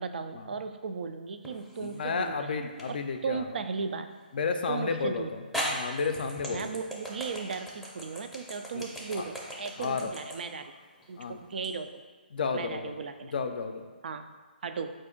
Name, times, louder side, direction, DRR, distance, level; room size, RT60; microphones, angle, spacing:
voice 1, 0.0-2.6 2.9-3.0 3.2-4.1 4.7-5.3 6.5-10.7 11.1-12.0 12.5-13.3 14.0-14.3 14.6-14.9, right 5 dB, 70° right, 8 dB, 0.3 m, -36 dB
sound 1, 1.4-2.0 2.8-2.9 4.8-4.9 5.5-11.7, equal, ahead, 0.5 m, -37 dB
voice 2, 1.8-3.5 4.3-6.7 8.7-8.8 9.1-9.3 9.8-10.1 11.2-11.4 12.3-12.9 13.2-13.9, left 5 dB, 60° left, 7 dB, 0.4 m, -32 dB
4.1 x 2.6 x 3.8 m, 1.5 s
hypercardioid pair, 145°, 6 cm